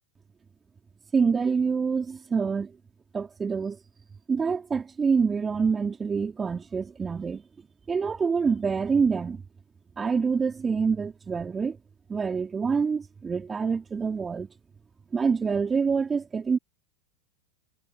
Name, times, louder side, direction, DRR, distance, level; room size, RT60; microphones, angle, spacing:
voice 1, 1.1-2.7 3.1-3.8 4.3-7.4 7.9-9.4 10.0-11.8 12.1-14.5 15.1-16.6, right 5 dB, 20° right, 4.5 m, -26 dB
figure-of-eight pair, 90°, 0 cm